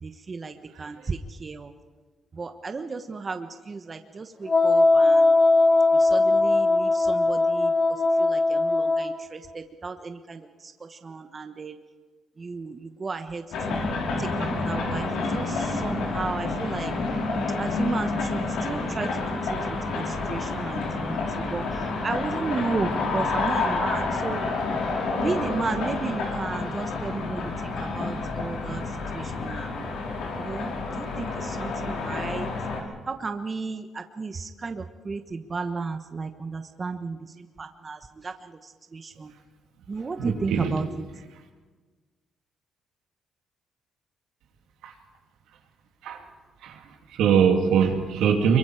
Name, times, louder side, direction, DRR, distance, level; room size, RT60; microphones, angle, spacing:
voice 1, 0.0-1.7 2.3-5.4 5.9-7.7 8.2-11.8 12.4-13.9 14.2-16.9 17.6-19.7 19.9-24.4 25.2-28.8 29.1-29.9 30.4-32.5 33.1-39.3 39.9-40.8, right 4 dB, 35° right, 7 dB, 1.2 m, -34 dB
voice 2, 0.7-1.1 40.2-40.8 44.8-44.9 46.0-46.3 46.6-48.6, right 7 dB, 85° right, 3 dB, 2.8 m, -23 dB
Wind instrument woodwind instrument, 4.5-9.2, left 2 dB, 35° left, 3.7 m, -20 dB
sound 1, 13.5-32.8, left 3 dB, 80° left, 4.2 m, -29 dB
24.5 x 23.0 x 5.0 m, 1.4 s
cardioid pair, 90°, 0 cm